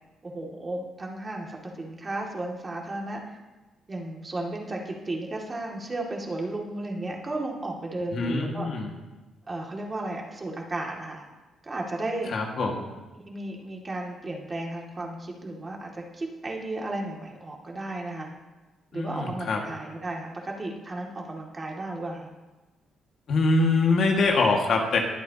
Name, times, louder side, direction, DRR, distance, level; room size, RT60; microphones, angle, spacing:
voice 1, 0.2-3.4 3.9-8.7 9.5-11.3 11.6-12.3 13.1-18.3 18.9-22.3, right 2 dB, 30° right, -1 dB, 2.3 m, -34 dB
voice 2, 8.1-8.9 12.3-12.9 18.9-19.6 23.3-25.0, left 3 dB, 60° left, 1 dB, 1.8 m, -24 dB
21.0 x 8.3 x 2.9 m, 1.2 s
cardioid pair, 90°, 0 cm